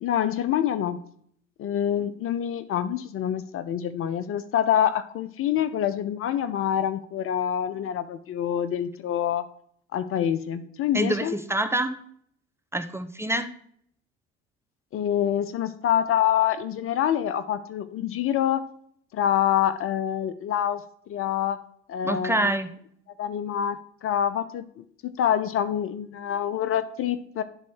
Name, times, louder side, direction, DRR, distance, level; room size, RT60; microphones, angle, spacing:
voice 1, 0.0-1.0 1.6-9.4 9.9-11.4 14.9-18.6 19.1-21.6 21.9-22.5 23.2-27.4, left 10 dB, 40° left, 12 dB, 0.5 m, -26 dB
voice 2, 10.9-11.9 12.7-13.5 22.0-22.7, right 1 dB, 5° right, 7 dB, 0.6 m, -26 dB
10.0 x 3.8 x 3.5 m, 0.64 s
hypercardioid pair, 65°, 35 cm